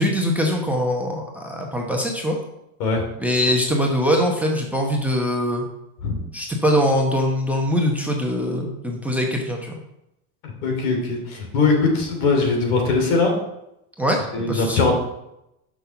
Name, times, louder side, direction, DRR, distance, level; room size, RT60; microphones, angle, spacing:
voice 1, 0.0-2.4 3.2-5.6 6.3-9.8 14.0-14.2 14.5-14.9, equal, 5° right, 0 dB, 0.9 m, -22 dB
voice 2, 10.6-13.3 14.3-14.9, left 4 dB, 75° left, 2 dB, 3.0 m, -20 dB
6.2 x 5.5 x 6.8 m, 0.85 s
supercardioid pair, 145°, 45 cm